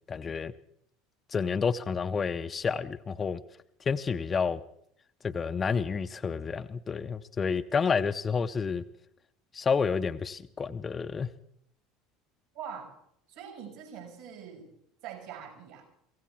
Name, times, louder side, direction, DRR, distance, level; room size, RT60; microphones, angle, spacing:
voice 1, 0.1-0.5 1.3-3.4 3.8-4.6 5.2-8.9 9.5-11.3, left 5 dB, 25° left, 10 dB, 0.6 m, -29 dB
voice 2, 12.5-12.9 13.3-14.7 15.0-15.9, right 8 dB, 65° right, 3 dB, 5.9 m, -43 dB
24.0 x 16.0 x 3.6 m, 0.71 s
figure-of-eight pair, 70°, 0 cm